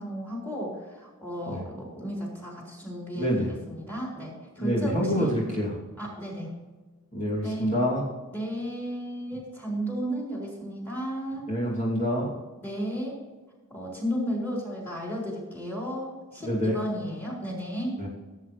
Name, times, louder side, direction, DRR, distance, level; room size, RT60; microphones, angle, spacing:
voice 1, 0.0-5.4 6.0-6.5 7.4-7.8 8.3-11.5 12.6-13.2 13.7-18.0, equal, 10° left, -3 dB, 4.2 m, -34 dB
voice 2, 3.1-3.5 4.6-5.7 7.1-8.0 11.5-12.3 16.4-16.8 18.0-18.1, equal, 35° left, -5 dB, 2.7 m, -26 dB
17.0 x 8.8 x 3.3 m, 1.2 s
head